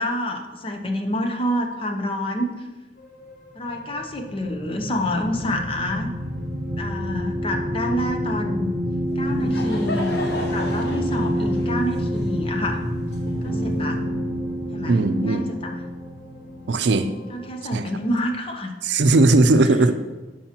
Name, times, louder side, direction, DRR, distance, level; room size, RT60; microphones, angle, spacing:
voice 1, 0.0-2.6 3.5-6.1 6.8-8.8 9.2-10.2 10.5-12.8 13.4-14.0 14.7-15.8 17.3-18.7, left 1 dB, 30° left, 4 dB, 0.7 m, -28 dB
sound 1, 3.0-18.2, left 1 dB, 50° left, 1.7 m, -38 dB
sound 2, 3.6-17.3, equal, 25° right, 1.2 m, -28 dB
Laughter / Crowd, 9.1-13.8, left 1 dB, 75° left, 1.1 m, -34 dB
voice 2, 14.9-15.5 16.7-17.1 17.7-17.8 18.8-20.0, right 2 dB, 85° right, 10 dB, 0.5 m, -18 dB
11.5 x 4.8 x 2.9 m, 1.2 s
head